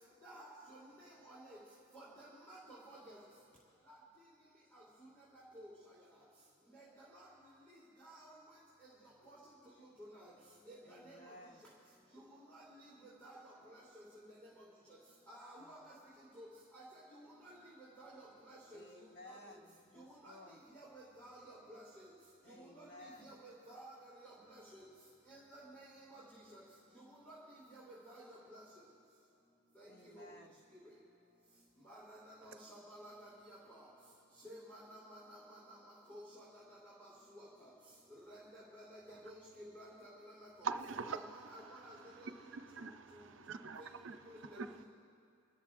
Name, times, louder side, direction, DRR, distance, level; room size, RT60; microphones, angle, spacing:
voice 1, 1.3-1.6 1.9-3.2 5.5-5.7 7.1-7.2 8.0-8.2 9.3-9.4 10.2-10.3 10.7-11.2 12.5-12.6 13.2-13.3 13.9-14.0 15.3-15.8 16.4-16.5 16.7-16.8 17.1-17.6 18.0-18.8 20.0-20.3 20.7-22.1 22.5-22.8 23.2-23.9 24.2-24.8 25.3-26.2 27.3-27.4 27.7-28.2 28.5-28.6 29.8-29.9 30.2-30.3 31.9-33.3 33.7-33.8 34.4-35.8 36.1-36.4 37.0-37.1 38.3-40.3 40.6-40.7 41.1-41.9 43.8-43.9 44.5-44.8, right 1 dB, 10° left, -8 dB, 3.0 m, -54 dB
voice 2, 10.8-11.7 15.6-15.9 18.7-20.6 22.4-23.4 29.9-30.6, left 1 dB, 50° left, 1 dB, 1.3 m, -57 dB
voice 3, 40.6-41.2 41.7-44.2 44.6-44.8, right 4 dB, 60° right, 9 dB, 0.6 m, -44 dB
29.0 x 13.5 x 2.6 m, 2.3 s
head